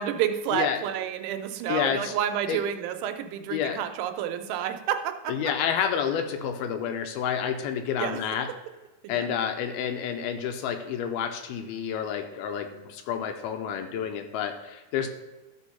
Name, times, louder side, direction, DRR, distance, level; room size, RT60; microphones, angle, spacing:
voice 1, 0.0-5.4 8.0-8.2 9.1-9.3, right 10 dB, 85° right, 8 dB, 2.8 m, -29 dB
voice 2, 1.7-2.1 2.5-2.6 3.5-3.8 5.3-8.5 9.1-15.1, left 8 dB, 80° left, 6 dB, 2.4 m, -29 dB
13.0 x 4.5 x 5.5 m, 1.2 s
omnidirectional pair, 4.8 m